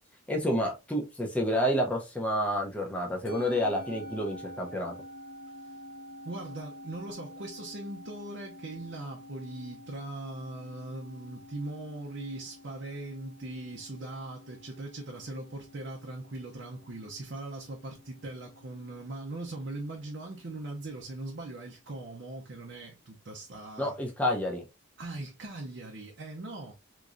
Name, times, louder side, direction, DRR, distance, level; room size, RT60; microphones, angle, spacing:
voice 1, 0.3-4.9 23.8-24.6, equal, 5° left, 0.6 m, -29 dB
Musical instrument, 3.3-21.8, left 1 dB, 75° left, 1.3 m, -49 dB
voice 2, 6.2-24.0 25.0-26.7, right 2 dB, 55° right, 0.6 m, -40 dB
3.6 x 3.0 x 2.5 m
head